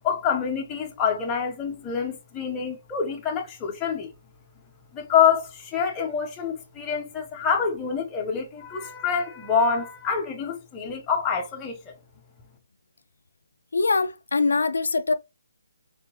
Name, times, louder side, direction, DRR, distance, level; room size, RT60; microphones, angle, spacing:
voice 1, 0.0-4.1 4.9-11.9, left 7 dB, 15° left, 0.8 m, -26 dB
voice 2, 13.7-15.1, left 3 dB, 80° left, 0.4 m, -23 dB
4.3 x 3.1 x 2.8 m
hypercardioid pair, 165°, 0 cm